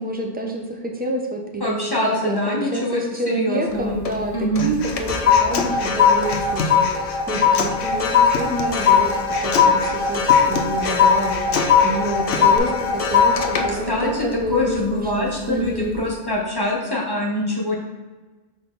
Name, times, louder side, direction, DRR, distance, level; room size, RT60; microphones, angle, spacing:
voice 1, 0.0-16.0, right 1 dB, 10° right, 1 dB, 0.6 m, -28 dB
voice 2, 1.6-3.0 3.3-4.0 4.3-4.7 13.5-17.8, left 1 dB, 20° left, -3 dB, 1.2 m, -24 dB
sound 1, 3.7-4.2 4.6-15.1 15.6-15.9, left 6 dB, 45° left, 0.5 m, -19 dB
Human voice, 4.6-12.6, left 4 dB, 90° left, 1.0 m, -29 dB
6.1 x 4.2 x 4.0 m, 1.3 s
omnidirectional pair, 1.1 m